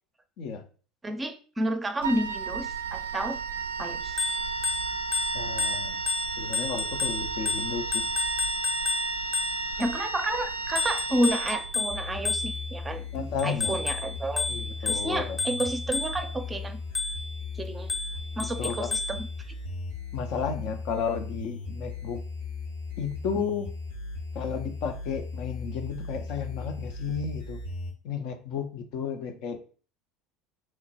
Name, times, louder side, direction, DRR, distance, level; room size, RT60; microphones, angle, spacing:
voice 1, 1.0-3.4 3.8-4.2 9.8-14.5 14.8-16.8 17.5-17.9 18.4-19.3, right 1 dB, 20° right, 0.5 m, -31 dB
Wind instrument woodwind instrument, 2.0-12.1, right 4 dB, 85° right, 0.3 m, -33 dB
Bicycle bell, 4.0-9.9 10.7-12.8 13.4-16.4 16.9-17.4 17.9-19.2, left 3 dB, 25° left, 0.7 m, -31 dB
voice 2, 5.3-6.0 6.4-8.0 13.1-13.8 14.5-15.4 18.6-18.9 20.1-22.2 23.0-23.7 24.3-27.6 28.0-29.6, left 6 dB, 60° left, 0.5 m, -33 dB
sound 1, 11.9-27.9, left 4 dB, 90° left, 1.1 m, -37 dB
3.1 x 2.2 x 4.1 m
hypercardioid pair, 75°, 0 cm